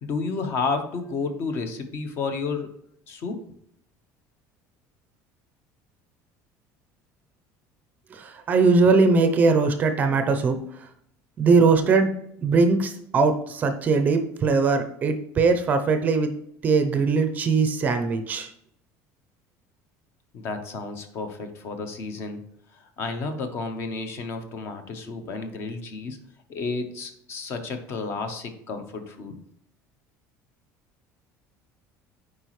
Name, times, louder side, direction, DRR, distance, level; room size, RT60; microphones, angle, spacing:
voice 1, 0.0-2.7 3.1-3.4 20.3-22.4 23.0-26.2 26.5-29.4, left 4 dB, 40° left, 8 dB, 0.8 m, -31 dB
voice 2, 8.5-10.6 11.4-12.1 12.4-16.3 16.6-18.5, right 4 dB, 25° right, 7 dB, 0.5 m, -20 dB
8.0 x 5.0 x 3.1 m, 0.71 s
cardioid pair, 180°, 7 cm